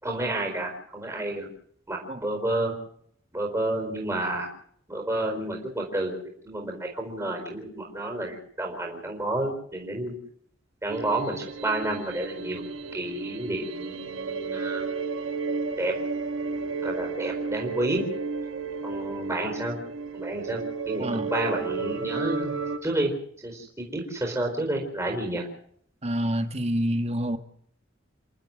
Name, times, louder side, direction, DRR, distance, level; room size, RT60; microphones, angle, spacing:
voice 1, 0.0-1.5 1.9-2.7 3.3-4.5 4.9-10.1 10.8-12.6 12.9-14.9 15.8-15.9 16.8-18.0 18.8-19.8 20.1-20.6 20.9-22.5 22.8-23.1 23.4-25.5, right 1 dB, 15° right, 4.6 m, -30 dB
sound 1, 10.9-22.8, right 4 dB, 70° right, 1.8 m, -32 dB
voice 2, 21.0-21.3 26.0-27.4, equal, 35° right, 1.7 m, -27 dB
30.0 x 12.0 x 7.7 m
head